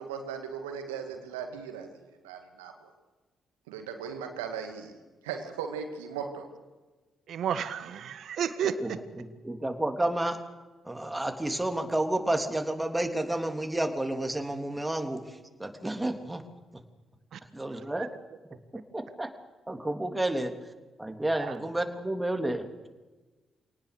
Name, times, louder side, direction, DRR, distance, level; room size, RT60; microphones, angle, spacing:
voice 1, 0.0-2.9 3.7-5.0 5.2-6.5, right 7 dB, 85° right, 5 dB, 2.4 m, -38 dB
voice 2, 7.3-9.0 17.3-17.4 18.0-18.1 21.4-21.5, right 8 dB, 65° right, 12 dB, 1.6 m, -32 dB
voice 3, 8.6-10.4 10.8-16.4 16.7-16.8 17.5-18.1 18.9-19.3 19.7-20.5 21.0-22.9, right 1 dB, 15° right, 5 dB, 3.4 m, -31 dB
26.5 x 18.5 x 6.8 m, 1.2 s
hypercardioid pair, 40°, 0 cm